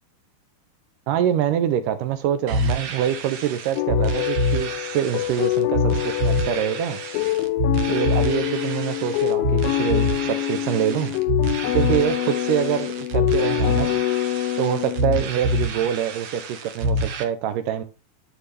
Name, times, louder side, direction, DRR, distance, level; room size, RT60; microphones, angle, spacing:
voice 1, 1.1-7.0 7.9-11.1 11.7-13.9 14.6-17.8, right 10 dB, 80° right, 2.1 m, -25 dB
sound 1, 2.5-17.2, equal, 60° right, 1.9 m, -26 dB
sound 2, 3.8-15.5, left 15 dB, 80° left, 2.3 m, -25 dB
11.5 x 4.6 x 3.2 m
omnidirectional pair, 4.2 m